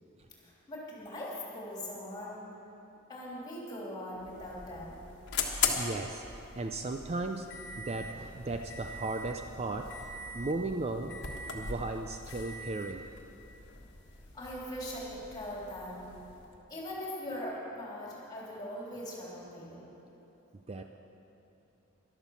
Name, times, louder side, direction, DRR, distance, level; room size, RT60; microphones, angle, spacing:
voice 1, 0.4-2.5 3.1-5.0 14.3-16.0 16.7-19.9, left 1 dB, 20° left, -5 dB, 3.3 m, -41 dB
sound 1, 4.1-16.6, left 5 dB, 55° left, 1.4 m, -40 dB
voice 2, 5.7-6.2 6.5-7.5 7.8-10.0 10.3-11.2 11.5-13.1 20.7-20.8, right 2 dB, 30° right, 5 dB, 0.4 m, -36 dB
11.5 x 11.5 x 7.1 m, 3.0 s
head